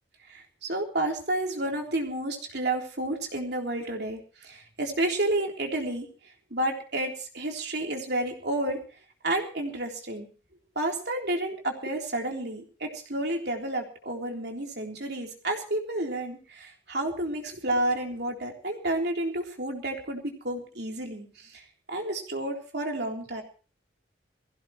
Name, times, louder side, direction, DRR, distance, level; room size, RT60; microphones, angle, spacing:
voice 1, 0.2-8.8 9.2-10.3 10.8-23.4, right 1 dB, 60° right, 1 dB, 3.6 m, -31 dB
21.5 x 16.0 x 3.1 m, 0.38 s
head